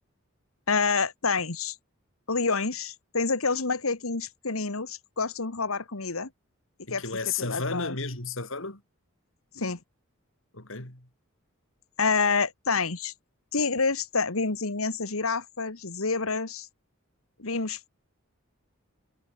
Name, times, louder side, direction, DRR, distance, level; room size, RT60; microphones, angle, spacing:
voice 1, 0.7-1.8 2.3-6.3 6.9-7.0 7.4-8.0 9.5-9.8 12.0-13.1 13.5-16.7 17.4-17.9, left 4 dB, 85° left, 1.8 m, -28 dB
voice 2, 6.9-8.8 10.5-11.1, left 4 dB, 65° left, 4.4 m, -33 dB
head